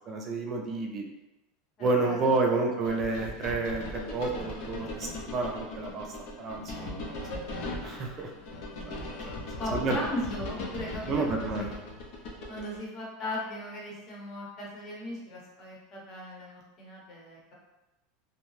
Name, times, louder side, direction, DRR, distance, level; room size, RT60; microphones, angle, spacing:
voice 1, 0.1-1.0 1.8-6.1 6.4-7.2 7.6-8.3 8.8-9.3 9.7-10.0 11.1-11.6, right 3 dB, 30° right, 1 dB, 0.4 m, -30 dB
voice 2, 1.8-2.6 9.6-11.8 12.5-17.5, left 1 dB, 35° left, -3 dB, 0.8 m, -38 dB
sound 1, 2.8-12.8, left 2 dB, 55° left, 0.5 m, -38 dB
2.7 x 2.1 x 3.0 m, 0.99 s
supercardioid pair, 155°, 0 cm